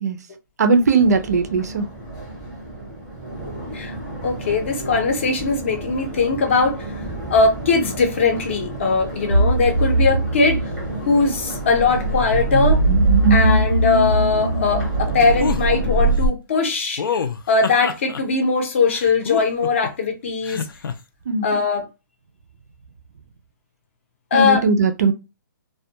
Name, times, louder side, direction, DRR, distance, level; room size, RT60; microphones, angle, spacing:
voice 1, 0.6-1.9 21.3-21.5 24.3-25.1, right 4 dB, 50° right, 0.4 m, -18 dB
Crowd, 1.0-16.1, right 1 dB, 5° right, 0.7 m, -32 dB
voice 2, 4.2-6.9 7.3-10.6 11.1-12.8 13.3-17.0 17.5-20.7 21.4-21.8 24.3-24.6, left 4 dB, 35° left, 0.6 m, -20 dB
sound 1, 9.3-16.3, right 2 dB, 85° right, 0.7 m, -19 dB
sound 2, 15.4-15.6 17.0-18.2 18.9-19.9 20.4-20.9, left 6 dB, 80° left, 0.5 m, -26 dB
2.2 x 2.2 x 2.7 m
hypercardioid pair, 175°, 11 cm